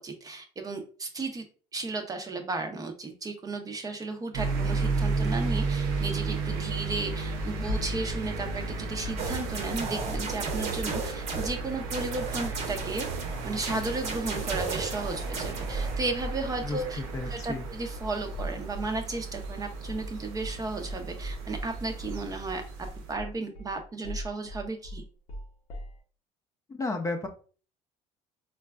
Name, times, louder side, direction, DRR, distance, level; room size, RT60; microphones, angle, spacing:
voice 1, 0.0-1.4 1.7-13.1 13.4-22.6 23.1-25.0, right 3 dB, 25° right, 5 dB, 0.6 m, -34 dB
sound 1, 4.3-23.1, right 3 dB, 85° right, 0.6 m, -33 dB
sound 2, 7.7-8.6 9.0-9.3 9.6-11.0 11.4-11.7 12.1-12.3 12.7-12.9 13.2-13.5 13.7-19.0 19.4-19.6 19.8-20.1 20.4-20.6 20.9-26.0, equal, 80° left, 0.7 m, -42 dB
sound 3, 9.2-11.5 11.9-16.0, right 4 dB, 55° right, 0.9 m, -35 dB
voice 2, 16.6-17.6 26.7-27.3, left 2 dB, 20° left, 4 dB, 0.5 m, -33 dB
3.9 x 2.3 x 2.2 m, 0.39 s
supercardioid pair, 90°, 14 cm